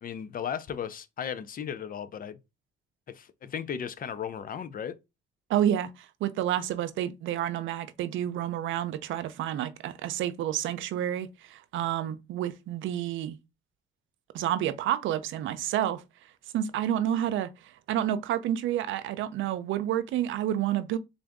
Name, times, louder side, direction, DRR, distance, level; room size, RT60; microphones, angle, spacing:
voice 1, 0.0-2.4 3.1-4.9, left 8 dB, 45° left, 0.5 m, -35 dB
voice 2, 5.5-13.4 14.3-16.0 16.5-17.5 17.9-21.0, right 11 dB, 80° right, 0.5 m, -29 dB
3.8 x 2.5 x 3.4 m
cardioid pair, 90°, 20 cm